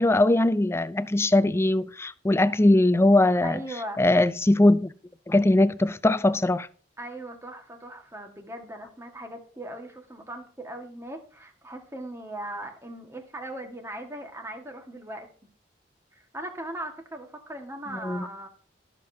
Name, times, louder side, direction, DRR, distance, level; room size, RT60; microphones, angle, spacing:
voice 1, 0.0-3.6 4.0-4.9 5.3-6.7 17.9-18.3, left 1 dB, 15° left, 0.4 m, -21 dB
voice 2, 3.4-4.0 7.0-15.3 16.1-18.5, right 1 dB, 15° right, 1.6 m, -39 dB
20.0 x 6.7 x 2.7 m
head